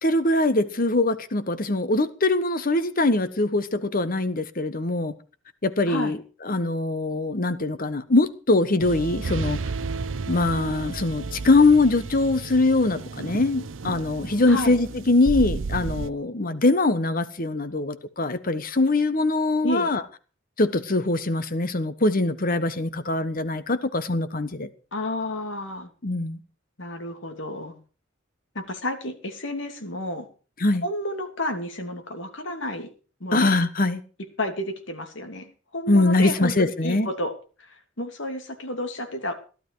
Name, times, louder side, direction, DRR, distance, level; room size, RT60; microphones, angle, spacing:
voice 1, 0.0-5.1 5.6-6.2 6.4-9.6 10.3-20.0 20.6-24.7 26.0-26.4 30.6-30.8 33.3-34.0 35.9-37.1, left 2 dB, 50° left, 1.3 m, -22 dB
voice 2, 5.9-6.2 14.5-14.8 19.6-19.9 24.9-25.9 26.8-27.8 28.5-30.3 30.8-32.9 33.2-33.5 34.4-37.3 37.6-39.3, left 1 dB, 75° left, 2.7 m, -31 dB
sound 1, 8.8-16.1, right 4 dB, 85° right, 0.6 m, -32 dB
15.5 x 12.0 x 4.7 m
head